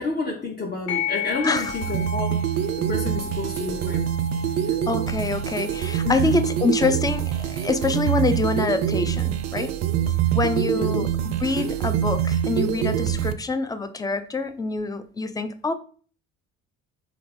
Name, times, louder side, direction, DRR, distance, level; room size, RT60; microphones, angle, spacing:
voice 1, 0.0-2.4 2.8-4.0 6.0-6.3 10.7-11.0, left 3 dB, 25° left, 0.9 m, -29 dB
sound 1, 0.9-9.9, left 7 dB, 70° left, 1.9 m, -36 dB
sound 2, 1.3-13.3, right 10 dB, 45° right, 0.5 m, -25 dB
voice 2, 4.9-9.7 10.3-15.7, left 3 dB, 10° left, 0.3 m, -26 dB
3.5 x 3.5 x 3.5 m
figure-of-eight pair, 55°, 37 cm